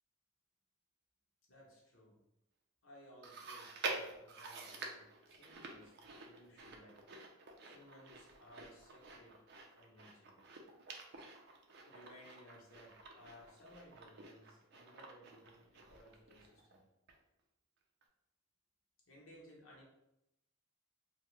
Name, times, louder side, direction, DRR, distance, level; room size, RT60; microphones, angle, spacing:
voice 1, 1.5-2.2 2.8-7.0 7.6-9.4 9.8-10.4 11.8-16.8 19.1-19.8, equal, 70° left, -3 dB, 0.8 m, -60 dB
Chewing mastication, 3.2-16.8 17.1-17.2 18.0-18.1, right 3 dB, 50° right, 0.4 m, -49 dB
2.8 x 2.1 x 3.1 m, 0.86 s
head